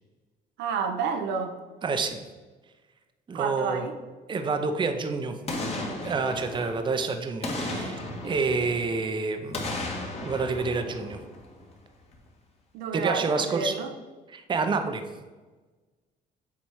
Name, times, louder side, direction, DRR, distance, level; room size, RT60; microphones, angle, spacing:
voice 1, 0.6-1.6 3.3-3.9 12.7-13.9, right 5 dB, 85° right, 6 dB, 0.8 m, -30 dB
voice 2, 1.8-2.2 3.3-3.8 4.3-5.4 6.0-9.7 10.2-11.2 12.9-13.7 14.3-15.0, right 4 dB, 30° right, 7 dB, 0.7 m, -28 dB
Boom, 5.5-7.0 7.4-9.1 9.5-11.8 12.1-12.2, left 2 dB, 40° left, 1.6 m, -35 dB
7.3 x 4.2 x 4.7 m, 1.3 s
cardioid pair, 110°, 17 cm